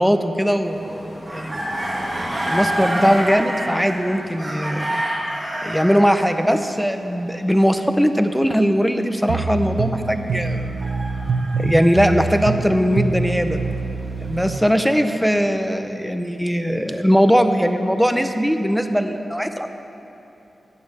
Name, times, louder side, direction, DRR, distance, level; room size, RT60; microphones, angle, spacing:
voice 1, 0.0-1.6 2.5-5.0 5.6-10.7 11.6-13.6 14.3-19.7, equal, ahead, 7 dB, 0.6 m, -20 dB
sound 1, 0.6-6.2 10.5-12.4 13.2-15.3, right 1 dB, 20° right, 2.3 m, -28 dB
sound 2, 9.3-14.6, right 4 dB, 90° right, 0.7 m, -25 dB
13.0 x 9.4 x 6.7 m, 3.0 s
wide cardioid pair, 160°, 0 cm